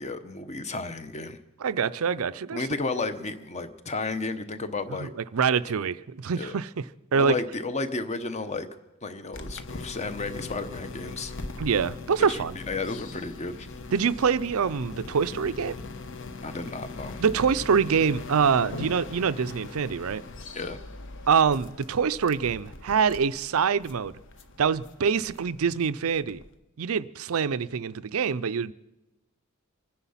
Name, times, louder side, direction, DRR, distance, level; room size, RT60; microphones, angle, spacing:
voice 1, 0.0-1.4 2.5-5.1 6.4-6.5 7.1-8.7 9.0-11.3 12.2-13.7 16.4-17.2 20.5-20.8, left 3 dB, 30° left, 0.9 m, -33 dB
voice 2, 1.6-2.6 5.0-6.7 7.1-7.4 11.6-12.5 13.9-15.8 17.2-20.2 21.3-24.1 24.6-26.4 26.8-28.7, right 6 dB, 70° right, 0.5 m, -25 dB
sound 1, 9.3-26.5, left 3 dB, 60° left, 1.0 m, -41 dB
25.0 x 10.0 x 5.7 m
head